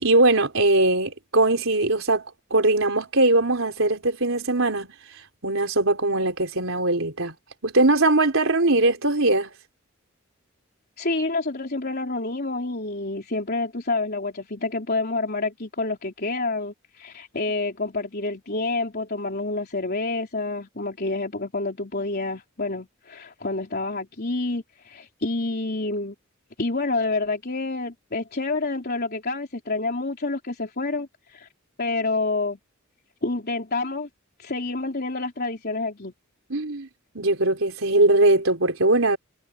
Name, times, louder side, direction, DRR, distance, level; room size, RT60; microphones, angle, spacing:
voice 1, 0.0-4.9 5.4-7.3 7.6-9.5 36.5-36.9 37.1-39.2, right 2 dB, 75° right, 4.2 m, -21 dB
voice 2, 11.0-26.1 26.6-31.5 31.8-32.6 33.2-34.1 34.4-36.1, left 3 dB, 50° left, 3.8 m, -28 dB
head